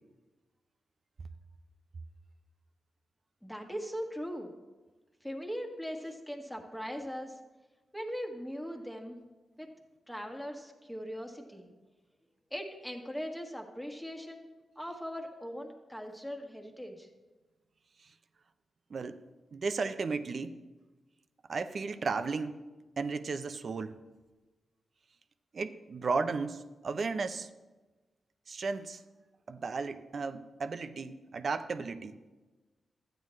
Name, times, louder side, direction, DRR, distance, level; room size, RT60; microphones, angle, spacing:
voice 1, 3.4-4.5 5.2-7.3 7.9-9.2 9.6-9.7 10.1-11.7 12.5-14.5 14.7-17.1, equal, 5° left, 2 dB, 1.6 m, -40 dB
voice 2, 19.5-20.5 21.5-22.6 23.0-23.9 25.5-27.5 28.5-29.0 29.5-32.1, right 4 dB, 55° right, 10 dB, 0.6 m, -34 dB
12.5 x 9.0 x 3.1 m, 1.2 s
cardioid pair, 65°, 0 cm